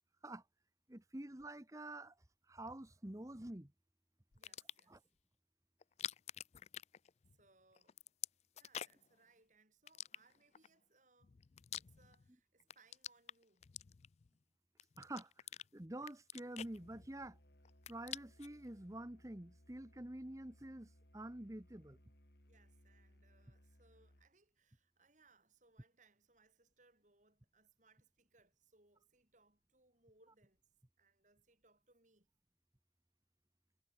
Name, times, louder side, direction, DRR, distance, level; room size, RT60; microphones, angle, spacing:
voice 1, 0.9-2.1 2.5-3.7 4.9-5.0 15.0-15.3 15.7-17.4 17.9-22.0, right 1 dB, 20° right, 1.1 m, -48 dB
sound 1, 4.3-5.0 5.8-7.5 7.8-9.1 9.9-10.7 11.2-12.3 12.6-14.3 14.8-15.7 16.0-17.4 17.7-18.6, left 11 dB, 35° left, 0.3 m, -48 dB
voice 2, 4.3-5.0 7.3-8.0 8.5-11.4 11.8-13.7 22.4-30.6 31.0-32.3, right 3 dB, 45° right, 5.7 m, -72 dB
Musical instrument, 16.6-24.4, equal, 65° left, 4.8 m, -66 dB
head